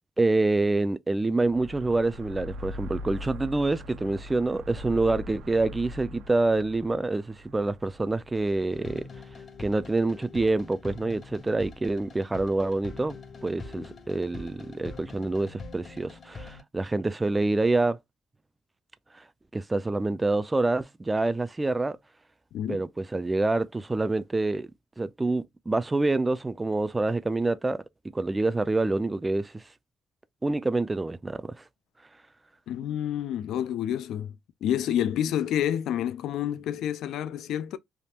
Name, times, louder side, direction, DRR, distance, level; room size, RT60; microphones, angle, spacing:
voice 1, 0.2-9.1 9.6-13.2 13.4-18.0 19.5-22.0 22.7-24.7 25.0-27.8 28.1-29.6 30.4-31.6, right 2 dB, 20° right, 0.4 m, -26 dB
sound 1, 1.4-9.7, left 1 dB, 75° right, 0.5 m, -42 dB
sound 2, 8.4-16.6, left 3 dB, 45° left, 0.8 m, -44 dB
voice 2, 22.5-22.8 32.7-34.3 34.6-37.8, left 10 dB, 80° left, 0.4 m, -29 dB
3.5 x 2.3 x 2.8 m
cardioid pair, 90°, 0 cm